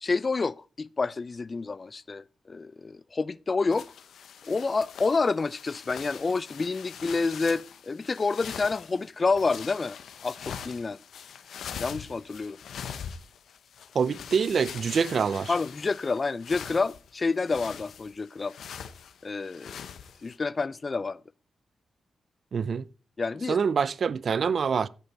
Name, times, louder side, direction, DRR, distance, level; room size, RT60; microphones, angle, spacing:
voice 1, 0.0-3.9 4.5-10.0 10.2-11.0 11.8-12.6 15.5-18.5 19.2-19.8 20.2-21.2 23.2-23.6, left 4 dB, 45° left, 0.5 m, -28 dB
sound 1, 3.7-20.4, left 8 dB, 80° left, 0.8 m, -43 dB
voice 2, 13.9-15.5 22.5-22.8 23.5-24.9, right 6 dB, 65° right, 0.5 m, -25 dB
14.5 x 5.5 x 4.0 m
supercardioid pair, 55°, 0 cm